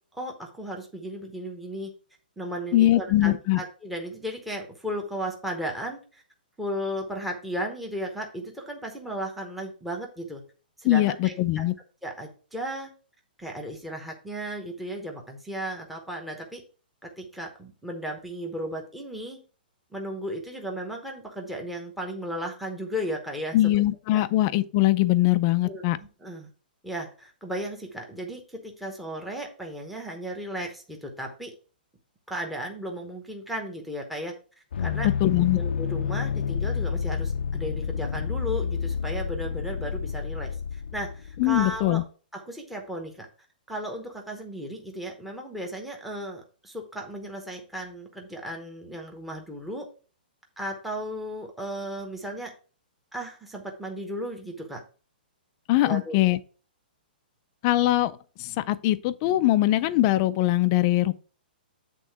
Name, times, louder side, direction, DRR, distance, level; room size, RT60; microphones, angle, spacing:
voice 1, 0.1-1.9 2.4-6.2 6.6-10.4 10.8-11.6 12.0-12.9 13.4-16.6 17.0-19.4 19.9-23.7 24.1-24.3 25.6-26.5 26.8-31.5 32.3-34.3 34.8-35.1 35.6-42.0 42.3-43.3 43.7-49.9 50.6-52.5 53.1-54.8 55.8-56.2, equal, ahead, 0.9 m, -35 dB
voice 2, 2.7-3.6 10.8-11.8 23.5-26.0 35.0-35.6 41.4-42.0 55.7-56.4 57.6-61.1, left 15 dB, 25° left, 0.4 m, -22 dB
sound 1, 34.7-41.9, left 6 dB, 80° left, 0.5 m, -30 dB
8.4 x 3.7 x 4.7 m
hypercardioid pair, 170°, 5 cm